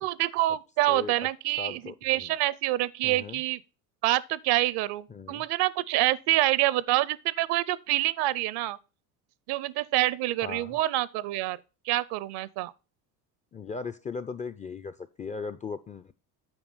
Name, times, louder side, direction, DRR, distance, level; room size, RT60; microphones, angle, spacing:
voice 1, 0.0-3.6 4.0-8.8 9.5-11.6 11.9-12.7, right 16 dB, 60° right, 0.6 m, -27 dB
voice 2, 0.9-1.3 1.6-2.3 3.0-3.4 5.1-5.5 10.4-10.8 13.5-16.1, left 4 dB, 20° left, 0.3 m, -38 dB
9.0 x 4.7 x 5.3 m
supercardioid pair, 85°, 46 cm